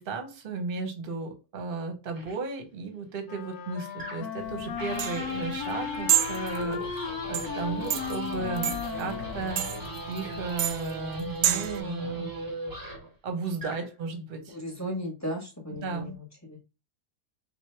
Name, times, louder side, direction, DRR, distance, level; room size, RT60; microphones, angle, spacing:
voice 1, 0.0-9.6 10.1-12.3 13.2-14.6 15.8-16.2, right 4 dB, 40° right, 5 dB, 0.9 m, -35 dB
sound 1, 2.2-2.4 4.0-4.4 4.8-13.1 13.5-13.9, right 1 dB, 20° right, 0.6 m, -39 dB
Wind instrument woodwind instrument, 3.3-10.8, left 8 dB, 70° left, 1.0 m, -36 dB
sound 2, 4.4-11.8, right 12 dB, 75° right, 1.2 m, -30 dB
voice 2, 14.5-16.6, equal, 10° left, 0 dB, 0.9 m, -36 dB
3.8 x 2.5 x 4.5 m, 0.28 s
omnidirectional pair, 1.9 m